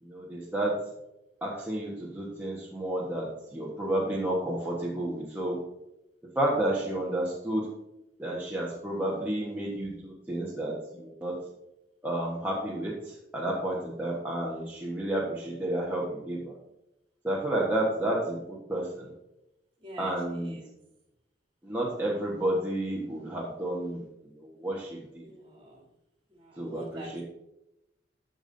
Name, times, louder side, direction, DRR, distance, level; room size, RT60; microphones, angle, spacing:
voice 1, 0.0-0.7 1.4-5.6 6.3-7.7 8.2-11.3 12.0-16.6 17.2-19.1 20.0-20.5 21.6-25.3 26.6-27.2, right 1 dB, 10° right, -5 dB, 1.2 m, -31 dB
voice 2, 19.8-20.8 25.2-25.9 26.3-27.2, right 1 dB, 30° right, -3 dB, 2.7 m, -46 dB
14.5 x 5.3 x 2.7 m, 0.89 s
head